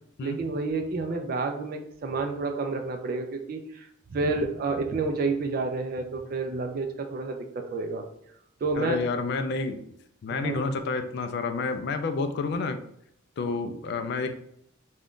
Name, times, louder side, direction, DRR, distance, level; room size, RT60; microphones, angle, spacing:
voice 1, 0.2-8.0 8.6-9.0 10.3-10.7, right 3 dB, 45° right, 5 dB, 0.3 m, -30 dB
voice 2, 8.8-9.8 10.2-12.8 13.4-14.3, left 3 dB, 55° left, 8 dB, 0.3 m, -29 dB
2.5 x 2.3 x 3.5 m, 0.71 s
head